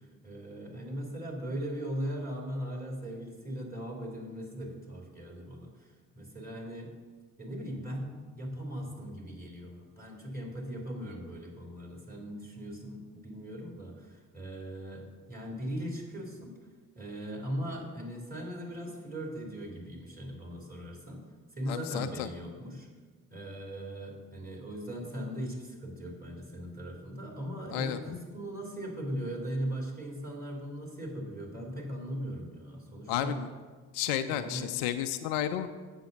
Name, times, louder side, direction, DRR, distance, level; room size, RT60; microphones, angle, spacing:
voice 1, 0.0-6.9 7.4-16.5 16.9-21.2 21.5-22.9 23.3-33.4 34.3-34.7, equal, 20° right, -2 dB, 3.0 m, -39 dB
voice 2, 21.7-22.3 27.7-28.0 33.1-33.5 33.9-35.7, left 11 dB, 65° left, 9 dB, 0.5 m, -32 dB
8.0 x 6.9 x 5.4 m, 1.4 s
figure-of-eight pair, 45°, 42 cm